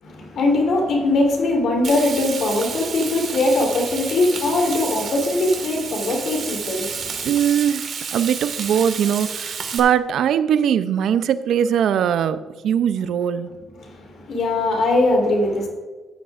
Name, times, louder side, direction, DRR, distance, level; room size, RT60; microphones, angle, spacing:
voice 1, 0.0-7.3 13.8-15.7, left 2 dB, 65° left, 0 dB, 3.2 m, -21 dB
Frying (food), 1.8-9.8, right 6 dB, 55° right, 1.6 m, -31 dB
voice 2, 7.2-13.6, right 9 dB, 70° right, 13 dB, 0.5 m, -21 dB
15.0 x 9.6 x 2.5 m, 1.3 s
cardioid pair, 130°, 0 cm